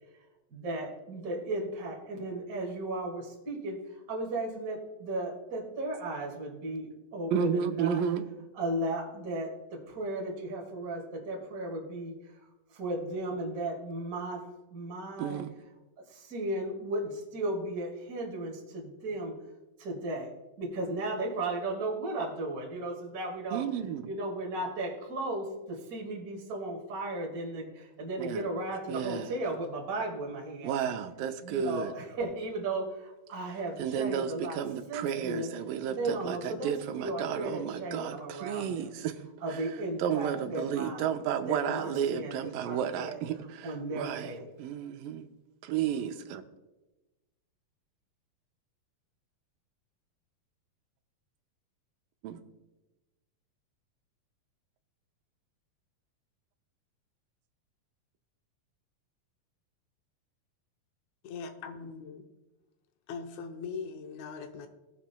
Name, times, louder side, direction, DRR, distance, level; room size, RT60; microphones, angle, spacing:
voice 1, 0.5-8.0 8.5-12.4 12.7-14.4 14.7-15.4 16.1-19.3 19.8-20.3 20.6-23.6 24.0-30.7 31.4-34.6 34.9-35.5 35.9-38.9 39.4-41.1 41.4-43.2 43.6-44.4, right 2 dB, 30° right, -2 dB, 1.8 m, -35 dB
voice 2, 7.3-8.3 15.2-15.5 23.5-24.0 28.2-28.5 28.9-29.3 30.6-31.9 33.8-39.2 39.5-39.6 40.0-44.3 44.6-45.3 45.6-46.4 52.2-52.4, right 8 dB, 80° right, 6 dB, 2.3 m, -32 dB
voice 3, 61.2-62.3 63.1-64.7, left 5 dB, 75° left, 6 dB, 1.8 m, -40 dB
18.5 x 7.4 x 2.2 m, 1.1 s
omnidirectional pair, 4.2 m